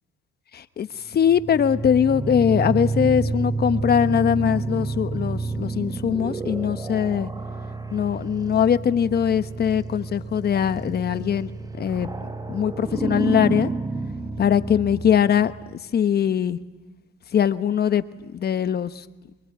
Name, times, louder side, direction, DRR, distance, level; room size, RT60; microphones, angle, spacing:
voice 1, 0.5-7.3 7.9-11.5 11.8-12.1 12.5-13.7 14.4-16.6 17.3-19.0, left 8 dB, 55° left, 12 dB, 1.2 m, -21 dB
sound 1, 1.1-15.8, right 3 dB, 20° right, 1.4 m, -30 dB
24.0 x 23.0 x 9.5 m, 1.1 s
cardioid pair, 90°, 20 cm